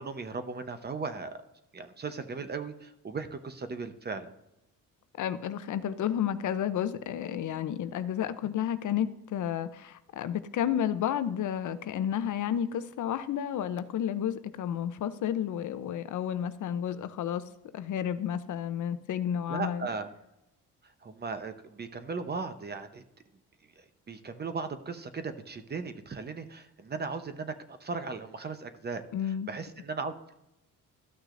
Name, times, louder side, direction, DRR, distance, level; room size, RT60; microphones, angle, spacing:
voice 1, 0.0-1.3 1.7-4.3 19.5-20.1 21.0-23.0 24.1-30.3, right 4 dB, 30° right, 9 dB, 0.8 m, -37 dB
voice 2, 5.2-17.4 17.7-19.9 29.1-29.5, left 9 dB, 55° left, 12 dB, 0.6 m, -31 dB
13.0 x 6.1 x 2.5 m, 0.89 s
cardioid pair, 105°, 35 cm